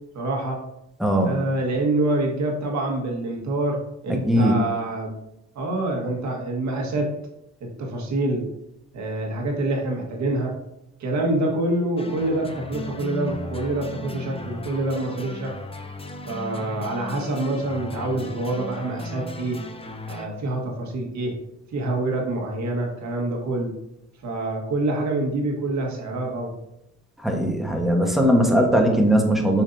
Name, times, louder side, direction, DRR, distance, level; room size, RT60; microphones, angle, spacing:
voice 1, 0.1-0.6 1.2-5.1 5.6-7.1 7.6-8.5 8.9-10.5 11.0-15.5 16.3-19.6 20.1-21.3 21.7-23.7 24.2-26.5, right 2 dB, 65° right, 0 dB, 1.7 m, -26 dB
voice 2, 1.0-1.4 4.3-4.6 27.2-29.6, equal, ahead, 1 dB, 1.3 m, -19 dB
sound 1, 12.0-20.3, left 1 dB, 20° left, 0.7 m, -36 dB
6.9 x 5.1 x 2.7 m, 0.83 s
cardioid pair, 90°, 30 cm